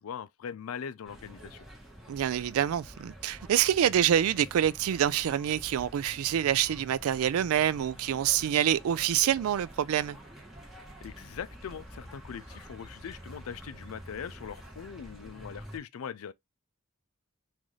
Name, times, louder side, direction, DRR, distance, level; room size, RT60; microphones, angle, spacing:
voice 1, 0.0-1.7 11.0-16.3, left 7 dB, 80° left, 0.4 m, -41 dB
sound 1, 1.0-15.8, equal, ahead, 0.9 m, -48 dB
voice 2, 2.1-10.2, right 10 dB, 80° right, 0.3 m, -26 dB
3.8 x 2.6 x 3.0 m
head